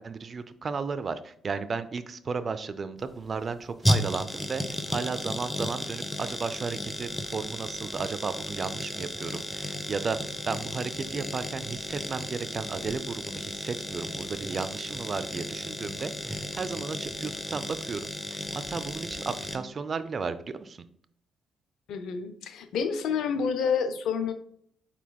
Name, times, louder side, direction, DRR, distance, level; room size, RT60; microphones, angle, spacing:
voice 1, 0.0-10.2 10.5-18.0 18.3-20.8, right 5 dB, 45° right, 12 dB, 0.4 m, -34 dB
sound 1, 3.0-19.6, left 1 dB, 10° left, 0.6 m, -34 dB
voice 2, 21.9-24.3, left 6 dB, 70° left, 9 dB, 0.5 m, -28 dB
4.5 x 4.1 x 2.2 m, 0.67 s
hypercardioid pair, 50°, 0 cm